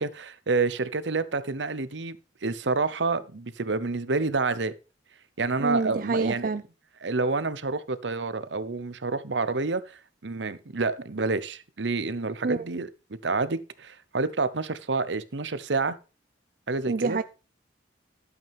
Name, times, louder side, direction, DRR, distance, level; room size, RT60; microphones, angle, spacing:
voice 1, 0.0-2.2 2.4-4.7 5.4-6.5 7.0-12.9 13.2-16.0 16.7-17.2, right 3 dB, 80° right, 0.9 m, -28 dB
voice 2, 5.6-6.6 12.4-12.7 16.9-17.2, right 4 dB, 50° right, 0.4 m, -27 dB
12.5 x 8.4 x 3.5 m
head